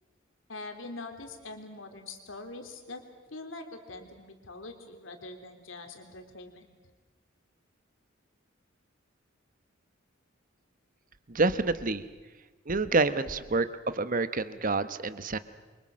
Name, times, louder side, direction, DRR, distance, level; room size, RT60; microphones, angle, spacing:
voice 1, 0.5-3.0 3.3-6.7, left 2 dB, 85° left, 5 dB, 3.3 m, -43 dB
voice 2, 11.3-12.0 12.7-13.7 13.9-15.4, right 3 dB, 45° right, 13 dB, 1.1 m, -27 dB
28.5 x 24.5 x 6.4 m, 1.3 s
head